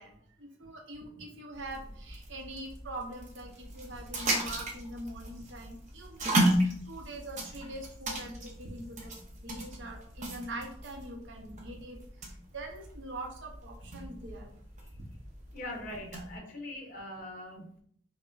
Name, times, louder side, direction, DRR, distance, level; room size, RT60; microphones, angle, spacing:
voice 1, 0.0-9.1 9.4-12.0 12.5-14.5, right 1 dB, 80° right, 2 dB, 0.8 m, -43 dB
sound 1, 1.5-16.4, right 1 dB, 40° right, 0.7 m, -35 dB
voice 2, 15.5-17.7, left 1 dB, 50° left, 1 dB, 0.9 m, -41 dB
4.8 x 2.1 x 2.5 m, 0.63 s
head